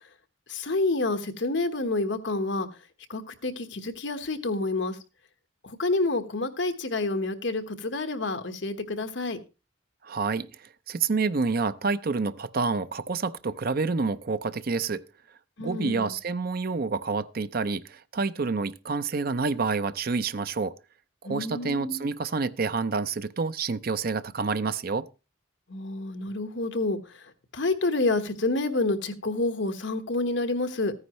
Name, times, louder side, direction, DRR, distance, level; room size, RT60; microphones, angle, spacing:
voice 1, 0.5-2.7 3.1-5.0 5.6-9.4 15.6-16.1 21.2-22.1 25.7-27.2 27.5-30.9, left 2 dB, 65° left, 1.2 m, -28 dB
voice 2, 10.0-15.0 15.6-20.7 21.2-25.1, right 4 dB, 50° right, 0.6 m, -28 dB
14.5 x 9.7 x 3.1 m
head